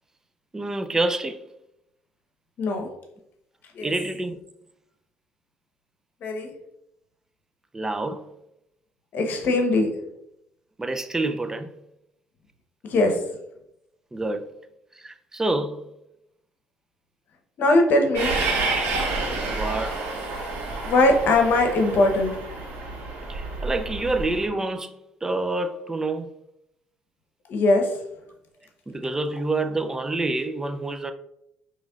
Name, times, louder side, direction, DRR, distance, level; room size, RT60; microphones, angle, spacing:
voice 1, 0.5-1.4 3.8-4.4 7.7-8.3 10.8-11.7 14.1-14.5 15.0-15.8 19.5-20.0 23.3-24.9 25.2-26.3 28.9-31.1, right 2 dB, 15° right, 0.4 m, -27 dB
voice 2, 2.6-2.9 3.7-3.9 6.2-6.5 9.1-9.9 12.8-13.2 17.6-18.3 20.8-22.4 27.5-27.9, left 2 dB, 60° left, 0.9 m, -20 dB
Train, 18.1-24.5, right 3 dB, 70° right, 1.3 m, -29 dB
5.1 x 3.1 x 2.3 m
supercardioid pair, 85°, 4 cm